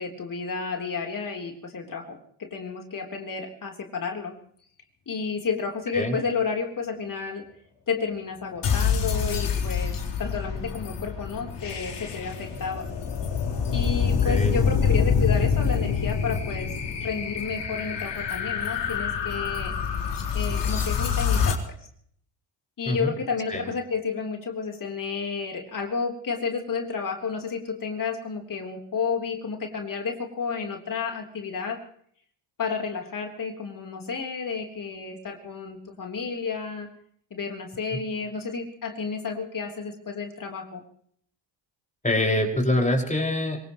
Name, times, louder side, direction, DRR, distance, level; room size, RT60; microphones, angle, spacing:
voice 1, 0.0-4.3 5.1-7.4 7.9-12.9 13.7-16.7 17.0-19.8 20.3-21.8 22.8-31.8 32.6-36.9 37.3-40.8, left 5 dB, 45° left, 2 dB, 3.6 m, -31 dB
sound 1, 8.6-21.5, left 6 dB, 65° left, 4.2 m, -26 dB
voice 2, 14.2-14.6 22.9-23.1 23.5-23.6 42.0-43.6, left 1 dB, 15° left, 1 dB, 5.5 m, -25 dB
26.5 x 17.5 x 3.1 m, 0.62 s
cardioid pair, 80°, 46 cm